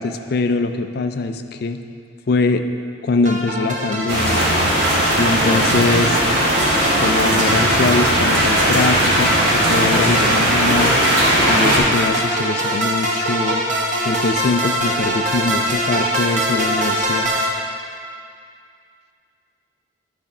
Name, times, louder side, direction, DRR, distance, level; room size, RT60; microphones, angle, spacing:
voice 1, 0.0-1.8 2.3-2.6 3.0-4.4 5.2-6.2 7.0-11.0 11.4-13.6 14.1-17.3, left 3 dB, 50° left, 8 dB, 0.4 m, -22 dB
sound 1, 3.2-17.5, right 1 dB, 40° right, 0.9 m, -23 dB
sound 2, 4.1-11.8, right 1 dB, 60° right, 1.7 m, -18 dB
9.3 x 4.3 x 5.4 m, 2.3 s
head